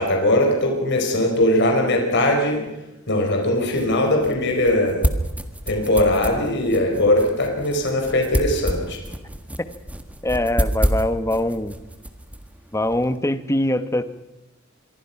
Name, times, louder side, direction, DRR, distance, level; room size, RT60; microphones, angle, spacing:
voice 1, 0.0-2.6 3.1-5.0 5.7-9.0, left 1 dB, 60° left, 2 dB, 4.6 m, -20 dB
sound 1, 3.2-13.2, equal, 5° right, 1.6 m, -29 dB
voice 2, 10.2-11.8 12.7-14.0, left 1 dB, 15° left, 12 dB, 1.1 m, -22 dB
26.5 x 23.0 x 5.8 m, 0.98 s
head